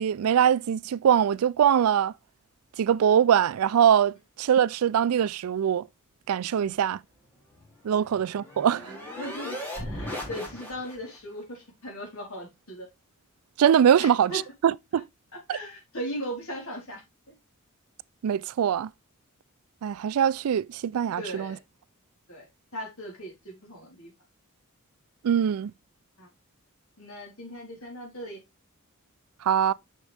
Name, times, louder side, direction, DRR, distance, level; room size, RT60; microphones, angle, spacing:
voice 1, 0.0-2.1 2.8-5.9 6.3-7.0 7.8-9.0 13.6-14.3 14.6-15.0 15.5-15.6 18.2-18.9 19.8-21.5 25.2-25.7 29.4-29.7, right 9 dB, 80° right, 0.3 m, -22 dB
sound 1, 7.5-11.2, left 1 dB, 10° left, 2.5 m, -38 dB
voice 2, 9.2-12.9 14.0-14.4 15.3-17.3 21.2-21.6 22.3-22.5 22.7-24.1 26.2-26.3 27.0-28.4, equal, 70° left, 3.9 m, -38 dB
6.4 x 6.2 x 3.4 m
head